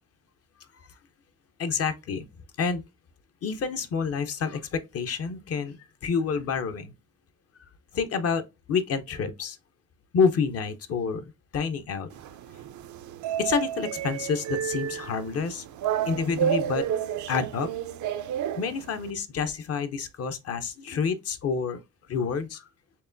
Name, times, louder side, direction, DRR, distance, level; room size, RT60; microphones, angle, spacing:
voice 1, 1.6-2.3 2.6-2.8 3.4-5.8 6.0-6.9 7.9-9.6 10.1-11.2 11.5-12.1 13.4-15.6 16.1-16.9 17.3-17.7 18.6-21.8 22.1-22.7, left 5 dB, 55° left, 0.7 m, -28 dB
sound 1, 12.1-19.1, right 10 dB, 75° right, 0.5 m, -31 dB
4.6 x 3.0 x 2.5 m
cardioid pair, 90°, 30 cm